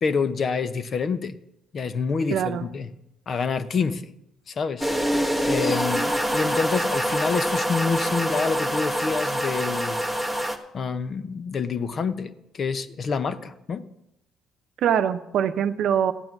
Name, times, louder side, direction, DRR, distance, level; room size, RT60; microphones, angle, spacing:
voice 1, 0.0-1.4 1.7-2.9 3.3-4.1 4.5-4.9 5.5-10.0 10.7-13.8, left 5 dB, 45° left, 12 dB, 0.9 m, -27 dB
voice 2, 2.3-2.7 14.8-16.1, right 9 dB, 65° right, 10 dB, 0.8 m, -23 dB
sound 1, 4.8-10.6, equal, 10° left, 1.4 m, -25 dB
14.5 x 9.0 x 6.0 m, 0.85 s
cardioid pair, 110°, 0 cm